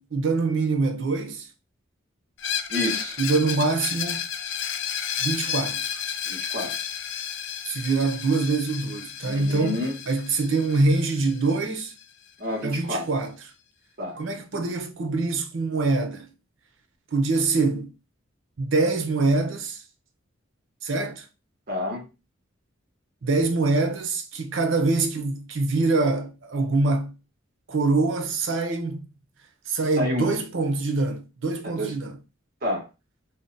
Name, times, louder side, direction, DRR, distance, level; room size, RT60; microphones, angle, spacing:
voice 1, 0.0-1.5 3.2-4.3 5.2-6.0 7.7-11.9 12.6-13.4 14.2-16.3 17.1-17.9 18.6-19.8 20.8-21.3 23.2-27.1 27.7-29.1 29.7-32.2, right 3 dB, 80° right, 0.7 m, -24 dB
Screech, 2.4-12.0, left 8 dB, 65° left, 0.4 m, -32 dB
voice 2, 2.7-3.1 6.3-6.7 9.2-9.9 12.4-13.1 14.0-14.2 21.7-22.0 30.0-30.4 31.6-31.9 32.6-32.8, left 1 dB, 50° right, 1.2 m, -29 dB
2.7 x 2.2 x 3.8 m
head